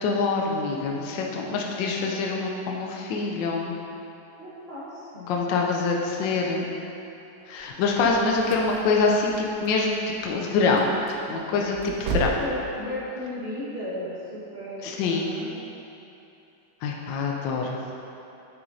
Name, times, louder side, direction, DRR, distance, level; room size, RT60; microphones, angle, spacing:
voice 1, 0.0-3.8 5.3-6.7 7.5-10.9 11.3-12.3 14.8-15.3 16.8-17.8, left 4 dB, 70° left, 0 dB, 1.3 m, -25 dB
voice 2, 4.4-5.5 12.1-15.5, left 1 dB, 30° right, -11 dB, 1.4 m, -35 dB
sound 1, 7.5-12.5, right 4 dB, 80° right, 1.6 m, -35 dB
7.8 x 6.0 x 2.7 m, 2.9 s
omnidirectional pair, 2.3 m